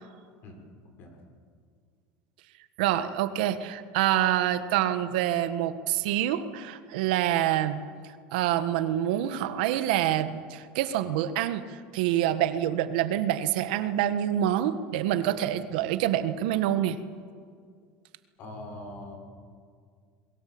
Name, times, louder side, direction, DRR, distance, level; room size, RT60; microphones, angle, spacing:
voice 1, 2.8-7.8 8.3-17.0, right 12 dB, 80° right, 10 dB, 1.6 m, -26 dB
voice 2, 18.4-19.2, left 1 dB, 45° left, 4 dB, 6.2 m, -42 dB
27.5 x 22.0 x 7.9 m, 2.1 s
cardioid pair, 150°, 5 cm